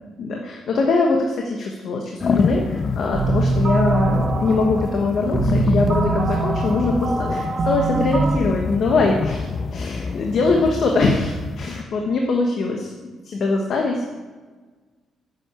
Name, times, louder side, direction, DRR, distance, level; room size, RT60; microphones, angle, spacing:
voice 1, 0.2-12.9 13.2-14.1, left 3 dB, 60° left, 1 dB, 1.3 m, -22 dB
sound 1, 2.2-11.8, left 4 dB, 40° left, 0.6 m, -26 dB
sound 2, 3.1-8.4, right 3 dB, 40° right, 1.0 m, -23 dB
7.9 x 7.1 x 8.3 m, 1.4 s
cardioid pair, 90°, 0 cm